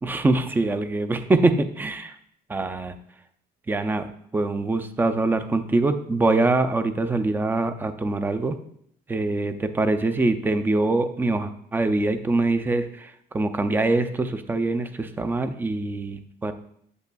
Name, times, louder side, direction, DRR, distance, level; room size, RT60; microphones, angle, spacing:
voice 1, 0.0-2.1 2.5-3.0 3.7-4.1 4.3-8.6 9.1-16.5, right 2 dB, 10° right, 9 dB, 0.4 m, -24 dB
8.1 x 7.9 x 2.3 m, 0.68 s
cardioid pair, 165°, 18 cm